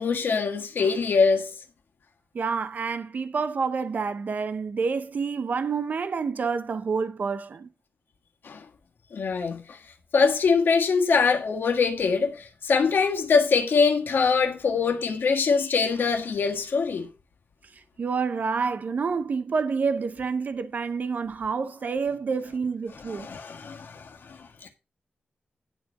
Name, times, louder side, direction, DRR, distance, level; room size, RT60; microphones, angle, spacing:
voice 1, 0.0-1.5 8.4-8.6 9.1-9.8 10.1-17.1 23.1-24.7, left 5 dB, 70° left, 1.5 m, -23 dB
voice 2, 2.3-7.7 18.0-23.3, right 5 dB, 50° right, 0.7 m, -28 dB
10.5 x 4.4 x 6.3 m
wide cardioid pair, 160°, 4 cm